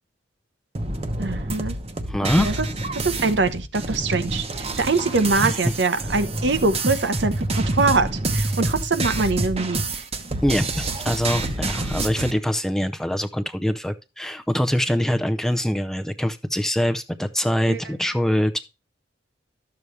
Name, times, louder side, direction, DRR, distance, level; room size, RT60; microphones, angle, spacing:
sound 1, 0.7-12.3, right 2 dB, 35° right, 1.0 m, -27 dB
voice 1, 1.2-1.8 2.4-2.7 3.0-9.8 17.7-17.8, right 3 dB, 65° right, 0.9 m, -23 dB
voice 2, 2.1-2.5 5.4-5.7 10.4-18.5, equal, 5° left, 0.6 m, -24 dB
12.0 x 7.0 x 3.2 m
head